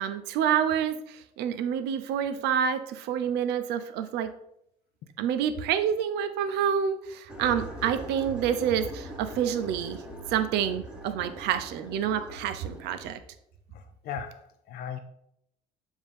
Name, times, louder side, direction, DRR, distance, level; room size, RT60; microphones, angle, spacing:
voice 1, 0.0-4.3 5.2-10.0 10.3-13.2, right 8 dB, 85° right, 9 dB, 0.6 m, -28 dB
sound 1, 7.3-13.2, equal, 5° right, 1.2 m, -42 dB
voice 2, 13.7-15.0, left 8 dB, 65° left, 8 dB, 0.5 m, -38 dB
7.2 x 2.7 x 5.1 m, 0.76 s
cardioid pair, 110°, 17 cm